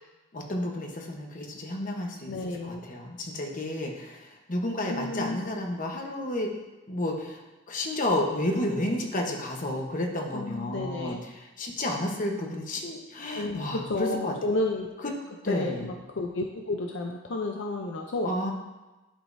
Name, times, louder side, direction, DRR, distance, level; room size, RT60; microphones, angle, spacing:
voice 1, 0.3-6.5 6.9-14.3 15.4-15.9 18.2-18.5, left 1 dB, 40° left, 1 dB, 1.0 m, -31 dB
voice 2, 2.3-2.8 4.9-5.4 10.3-11.2 13.3-14.9 15.5-18.3, left 2 dB, 65° left, 2 dB, 0.5 m, -31 dB
11.0 x 5.1 x 2.6 m, 1.1 s
head